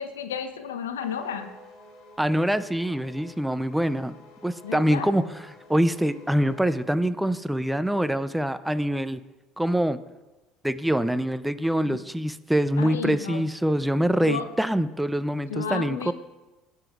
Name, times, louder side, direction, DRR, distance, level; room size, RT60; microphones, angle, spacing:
voice 1, 0.0-1.5 4.6-5.1 11.8-12.0 12.8-13.4 14.2-14.5 15.5-16.1, left 7 dB, 85° left, 8 dB, 0.7 m, -32 dB
sound 1, 1.0-6.9, left 1 dB, 60° left, 2.0 m, -50 dB
voice 2, 2.2-4.2 4.4-9.2 9.6-10.0 10.6-16.1, equal, 5° right, 14 dB, 0.5 m, -25 dB
15.5 x 6.9 x 2.4 m, 1.1 s
hypercardioid pair, 65°, 0 cm